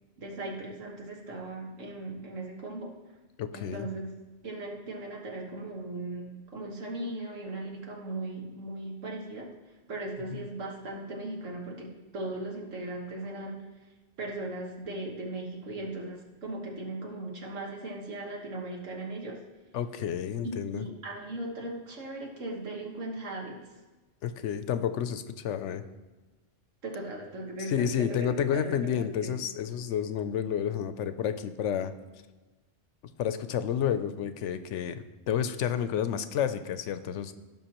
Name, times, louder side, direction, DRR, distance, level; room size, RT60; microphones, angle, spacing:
voice 1, 0.2-2.9 3.5-4.1 4.4-9.5 9.9-13.6 14.2-19.4 20.7-23.6 26.8-29.4, right 2 dB, 85° right, -1 dB, 1.8 m, -38 dB
voice 2, 3.4-3.9 10.3-10.5 19.7-20.8 24.2-25.8 27.7-31.9 33.2-37.3, left 9 dB, 75° left, 11 dB, 0.9 m, -30 dB
16.5 x 5.5 x 3.0 m, 1.2 s
omnidirectional pair, 1.3 m